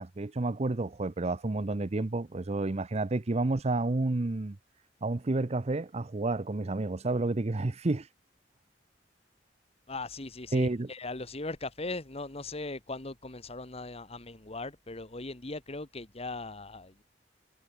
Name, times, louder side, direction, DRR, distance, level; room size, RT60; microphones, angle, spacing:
voice 1, 0.0-4.6 5.0-8.1 10.5-10.9, right 2 dB, 40° right, 0.7 m, -30 dB
voice 2, 9.9-17.0, left 3 dB, 35° left, 1.7 m, -39 dB
head